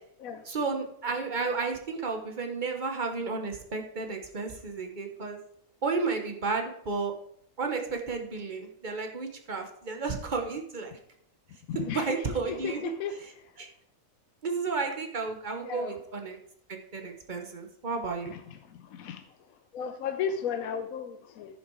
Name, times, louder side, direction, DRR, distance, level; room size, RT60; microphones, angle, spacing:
voice 1, 0.4-5.4 5.8-7.1 7.6-10.9 11.7-12.8 13.2-13.3 13.6-13.7 14.4-16.4 16.7-18.3, right 4 dB, 35° right, 4 dB, 1.2 m, -32 dB
voice 2, 11.7-12.1 12.5-13.1 15.6-16.0 18.3-18.4 18.8-19.2 19.7-21.6, left 7 dB, 80° left, 7 dB, 1.1 m, -34 dB
10.0 x 6.5 x 4.6 m, 0.68 s
omnidirectional pair, 1.5 m